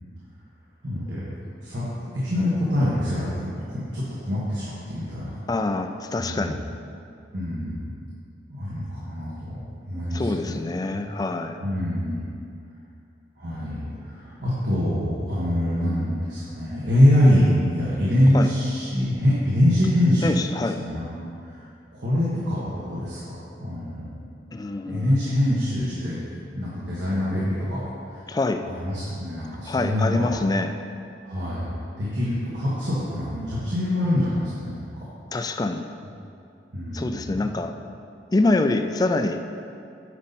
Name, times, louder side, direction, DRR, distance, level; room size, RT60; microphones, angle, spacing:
voice 1, 0.8-1.3 1.6-1.9 2.2-5.4 6.2-6.6 7.3-7.9 8.5-9.6 9.9-10.5 11.6-12.3 13.4-20.3 20.7-21.1 21.4-21.6 21.9-24.1 24.9-26.2 26.5-27.8 28.1-28.2 28.6-30.3 31.2-31.7 32.0-35.0 36.7-37.4, left 1 dB, 80° right, -8 dB, 1.6 m, -24 dB
voice 2, 5.5-6.6 10.1-11.6 18.3-18.5 20.2-20.8 24.5-25.2 28.3-28.6 29.7-30.7 35.3-35.9 36.9-37.7 38.3-39.4, left 2 dB, 20° left, 7 dB, 0.3 m, -25 dB
9.6 x 5.4 x 4.2 m, 2.5 s
head